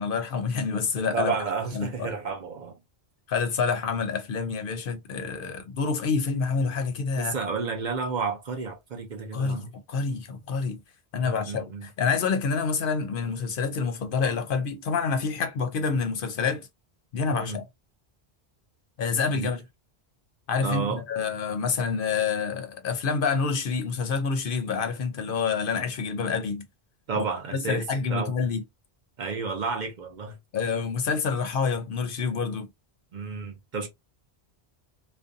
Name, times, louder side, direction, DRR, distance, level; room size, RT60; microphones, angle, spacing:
voice 1, 0.0-1.4 1.7-2.1 3.3-7.4 9.3-10.8 11.1-16.7 17.1-17.6 19.0-19.6 20.5-26.6 27.2-27.3 27.5-28.6 30.5-32.7, left 5 dB, 65° left, 0.6 m, -27 dB
voice 2, 1.1-2.8 7.2-9.7 11.2-11.9 17.3-17.6 19.3-19.6 20.6-21.0 27.1-27.8 28.1-28.3 29.2-30.4 33.1-33.9, right 5 dB, 55° right, 0.6 m, -31 dB
2.5 x 2.2 x 2.5 m
omnidirectional pair, 1.1 m